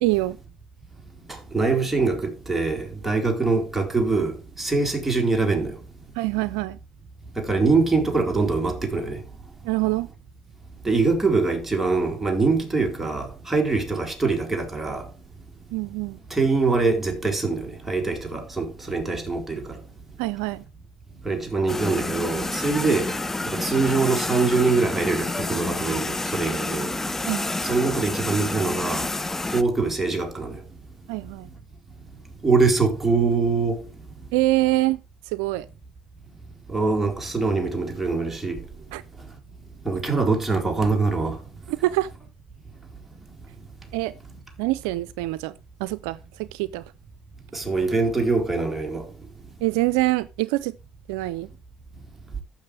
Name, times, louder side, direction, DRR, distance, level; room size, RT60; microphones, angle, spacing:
voice 1, 0.0-0.4 6.2-6.8 9.6-10.1 15.7-16.2 20.2-20.6 27.3-27.5 31.1-31.5 34.3-35.0 35.3-35.7 38.9-39.0 41.7-42.1 43.9-44.1 44.6-45.5 45.8-46.8 49.6-50.7 51.1-51.5, right 19 dB, 85° right, 0.5 m, -25 dB
voice 2, 1.5-4.3 4.6-5.7 7.4-9.2 10.8-15.0 16.3-19.6 21.3-23.1 23.5-26.9 27.6-29.1 29.5-30.6 32.4-33.8 36.7-38.6 39.9-41.4 47.5-49.0, right 3 dB, 10° right, 4.3 m, -23 dB
sound 1, 21.7-29.6, left 2 dB, 15° left, 0.7 m, -29 dB
14.5 x 6.2 x 3.3 m
supercardioid pair, 75°, 2 cm